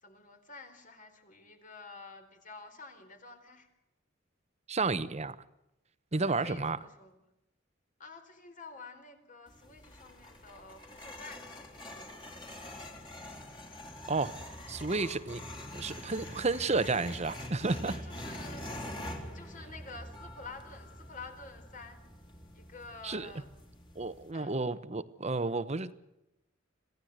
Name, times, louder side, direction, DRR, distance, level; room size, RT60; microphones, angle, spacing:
voice 1, 0.0-3.7 6.1-7.2 8.0-12.8 18.0-22.0 22.5-23.5 24.1-24.6, left 3 dB, 45° left, 4.0 m, -50 dB
voice 2, 4.7-5.4 6.1-6.8 14.1-14.4 14.7-15.4 15.7-18.0 23.0-23.3 23.9-25.9, right 3 dB, 35° right, 1.0 m, -31 dB
sound 1, 9.5-24.3, left 1 dB, 25° left, 3.7 m, -45 dB
26.5 x 16.0 x 8.0 m
head